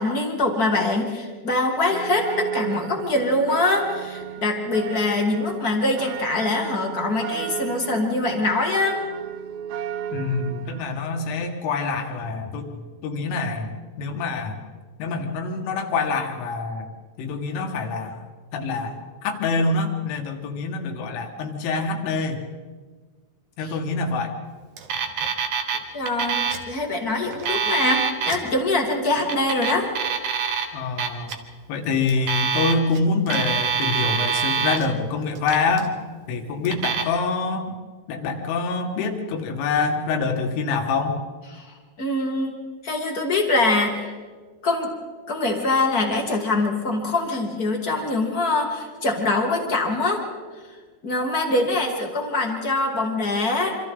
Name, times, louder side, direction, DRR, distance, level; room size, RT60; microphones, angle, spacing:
voice 1, 0.0-9.0 23.6-23.7 25.9-29.9 41.5-42.6 42.8-44.2 44.6-44.9 45.3-50.2 51.0-53.7, left 2 dB, 35° left, 1 dB, 1.5 m, -23 dB
sound 1, 1.9-11.0, right 9 dB, 75° right, 2.7 m, -34 dB
voice 2, 10.1-12.7 13.0-14.6 15.0-16.9 17.2-18.3 18.5-18.9 19.2-22.4 23.6-24.3 30.7-31.3 31.7-35.9 36.3-37.7 38.1-41.2, left 4 dB, 90° left, 3 dB, 4.3 m, -25 dB
Alarm, 24.8-25.8 26.1-26.7 27.3-28.4 29.2-30.6 31.0-31.3 32.1-33.0 33.3-34.9 35.4-35.9 36.6-37.0, right 6 dB, 60° right, 2.1 m, -25 dB
27.5 x 26.0 x 3.9 m, 1.5 s
omnidirectional pair, 5.5 m